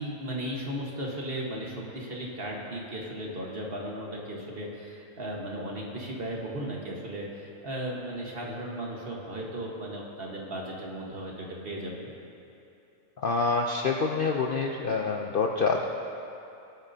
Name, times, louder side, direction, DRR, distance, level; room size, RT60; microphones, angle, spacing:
voice 1, 0.0-12.1, right 1 dB, 45° right, -2 dB, 1.6 m, -36 dB
voice 2, 13.2-15.9, left 4 dB, 55° left, 1 dB, 0.6 m, -26 dB
20.5 x 9.0 x 2.8 m, 2.7 s
omnidirectional pair, 1.4 m